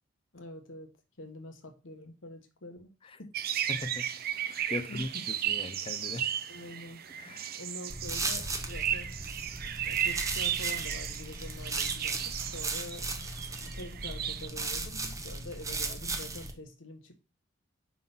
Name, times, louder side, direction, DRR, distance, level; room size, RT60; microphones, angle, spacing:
voice 1, 0.3-0.9 1.2-2.9 3.2-3.3 4.7-5.3 6.5-7.0 7.6-9.3 9.8-13.1 13.6-17.2, left 2 dB, 75° left, 1.2 m, -45 dB
sound 1, 3.3-14.5, right 10 dB, 50° right, 0.5 m, -35 dB
voice 2, 3.7-4.1 4.5-6.3 7.2-7.5, left 2 dB, 25° left, 0.5 m, -39 dB
sound 2, 7.9-16.5, right 3 dB, 15° right, 0.8 m, -36 dB
5.6 x 3.7 x 5.5 m
head